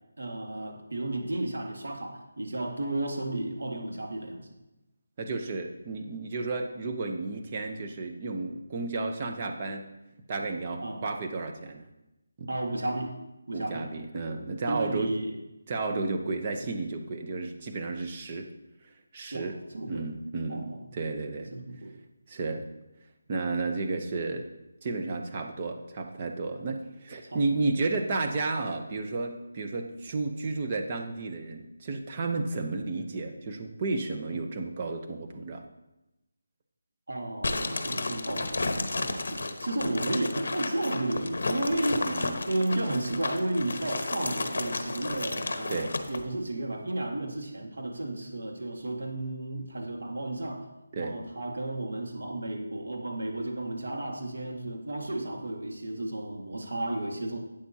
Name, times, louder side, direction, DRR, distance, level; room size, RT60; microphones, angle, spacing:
voice 1, 0.2-4.5 10.8-11.0 12.5-13.1 13.5-13.9 14.7-15.4 19.3-19.5 19.7-20.1 20.5-20.8 21.5-21.9 27.3-27.4 37.1-42.1 42.5-50.7 51.0-57.4, right 1 dB, 80° right, 2 dB, 1.7 m, -33 dB
voice 2, 5.2-9.9 10.3-11.9 12.4-12.5 13.5-15.1 15.7-18.5 19.1-19.6 19.9-21.5 22.3-22.6 23.3-24.5 24.8-35.7 42.0-42.4 45.7-45.9 50.9-51.2, right 3 dB, 25° right, 4 dB, 0.7 m, -32 dB
sound 1, 37.4-46.2, left 2 dB, 60° left, 1.0 m, -32 dB
12.0 x 8.7 x 2.8 m, 0.96 s
figure-of-eight pair, 175°, 0 cm